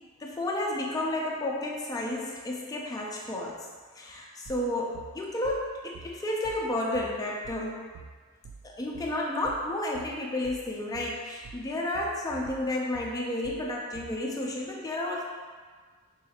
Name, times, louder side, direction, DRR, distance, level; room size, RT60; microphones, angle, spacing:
voice 1, 0.2-3.7 4.0-7.9 8.6-15.2, left 1 dB, 15° left, -2 dB, 0.4 m, -31 dB
sound 1, 4.5-14.2, right 5 dB, 60° right, 0.3 m, -48 dB
3.9 x 2.6 x 2.8 m, 1.5 s
head